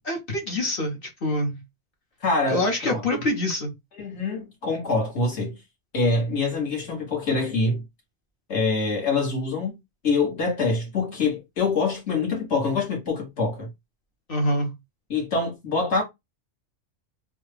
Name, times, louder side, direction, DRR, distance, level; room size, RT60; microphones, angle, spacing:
voice 1, 0.1-1.6 2.5-3.7 14.3-14.7, left 1 dB, 50° left, 1.0 m, -25 dB
voice 2, 2.2-3.0 4.0-5.6 5.9-7.8 8.5-9.8 10.0-13.7 15.1-16.0, left 3 dB, 65° left, 1.6 m, -25 dB
3.3 x 2.2 x 3.3 m
omnidirectional pair, 1.2 m